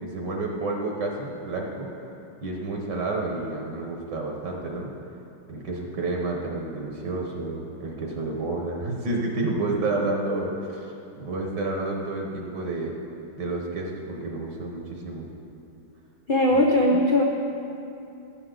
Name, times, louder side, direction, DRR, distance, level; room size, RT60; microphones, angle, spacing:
voice 1, 0.0-1.9 2.4-4.9 5.5-12.9 13.4-15.3 16.5-16.6, right 2 dB, 65° right, 0 dB, 1.7 m, -30 dB
voice 2, 16.3-17.2, left 1 dB, 75° left, -1 dB, 0.4 m, -19 dB
17.5 x 7.3 x 3.9 m, 2.7 s
omnidirectional pair, 2.1 m